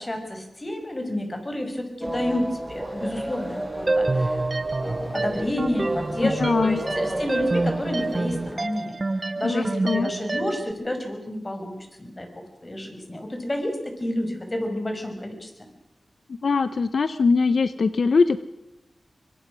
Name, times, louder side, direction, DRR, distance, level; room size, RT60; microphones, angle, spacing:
voice 1, 0.0-4.4 4.8-12.3 12.6-15.5, left 1 dB, 30° left, 5 dB, 5.8 m, -30 dB
sound 1, 2.0-8.5, right 1 dB, 15° right, 4.9 m, -32 dB
sound 2, 3.9-10.7, right 2 dB, 45° right, 0.9 m, -27 dB
voice 2, 6.4-6.8 9.4-10.1 16.4-18.4, left 4 dB, 75° left, 13 dB, 0.8 m, -22 dB
24.0 x 23.5 x 6.3 m, 0.90 s
wide cardioid pair, 65°, 0 cm